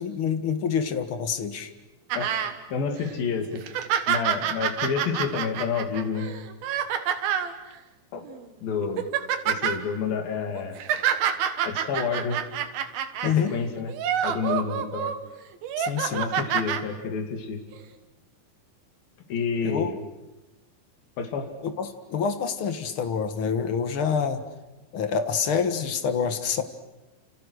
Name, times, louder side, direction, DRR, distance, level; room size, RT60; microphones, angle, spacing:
voice 1, 0.0-1.7 13.2-13.5 15.8-16.2 19.6-19.9 21.6-24.4 24.9-26.6, left 6 dB, 45° left, 8 dB, 2.0 m, -27 dB
sound 1, 2.1-2.5 3.0-3.1 3.6-7.5 8.3-8.4 8.8-9.8 10.5-13.3 13.9-15.2 15.6-16.8 17.7-17.8, right 9 dB, 85° right, 3.4 m, -27 dB
voice 2, 2.7-3.6 4.1-6.3 8.1-8.3 8.6-9.1 9.4-10.8 11.7-12.4 13.2-13.9 14.2-15.1 16.1-17.6 19.3-20.0 21.2-21.5, left 6 dB, 80° left, 3 dB, 4.3 m, -29 dB
29.5 x 28.5 x 6.5 m, 1.1 s
omnidirectional pair, 4.1 m